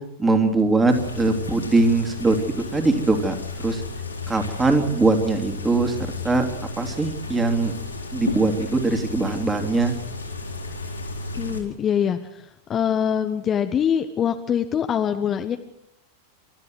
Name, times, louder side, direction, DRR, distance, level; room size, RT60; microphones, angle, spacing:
voice 1, 0.2-3.8 4.3-6.4 6.8-7.7 8.1-9.9, right 3 dB, 15° right, 5 dB, 2.9 m, -21 dB
sound 1, 0.9-11.6, left 3 dB, 80° left, 4.3 m, -33 dB
voice 2, 11.4-15.6, left 8 dB, 25° left, 7 dB, 1.1 m, -24 dB
28.5 x 13.5 x 7.8 m, 0.80 s
figure-of-eight pair, 90°, 0 cm